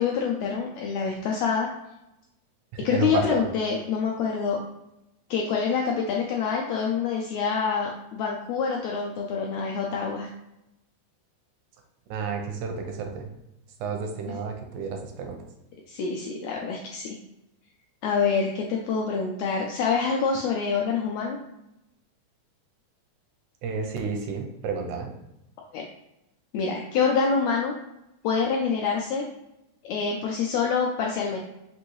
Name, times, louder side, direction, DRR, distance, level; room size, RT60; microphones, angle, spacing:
voice 1, 0.0-1.7 2.8-4.6 5.3-10.3 14.3-14.4 15.9-17.2 18.0-21.4 25.7-25.8 26.5-27.7 28.2-29.2 29.8-31.4, left 5 dB, 85° left, 0 dB, 1.5 m, -26 dB
voice 2, 2.7-3.5 12.1-13.3 13.8-15.4 23.6-25.1, right 5 dB, 85° right, 3 dB, 2.0 m, -31 dB
5.5 x 2.6 x 3.0 m, 0.90 s
omnidirectional pair, 3.6 m